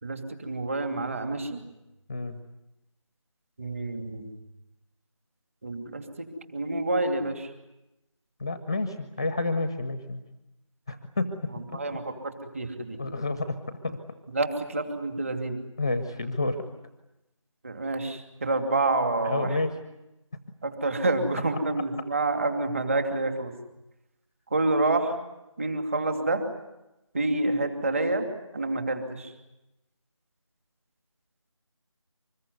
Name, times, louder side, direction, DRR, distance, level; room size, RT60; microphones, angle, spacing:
voice 1, 0.0-1.6 3.6-4.3 5.6-6.0 6.5-7.5 11.5-13.0 14.3-15.6 17.6-19.5 20.6-23.5 24.5-25.1 25.6-26.4 27.1-28.3 28.5-29.3, right 2 dB, 25° right, 6 dB, 2.7 m, -28 dB
voice 2, 8.4-10.2 10.9-11.3 13.0-13.6 13.8-14.0 15.8-16.6 19.2-19.8 21.5-21.6, left 2 dB, 10° left, 9 dB, 0.9 m, -29 dB
25.5 x 21.5 x 9.5 m, 0.94 s
figure-of-eight pair, 170°, 17 cm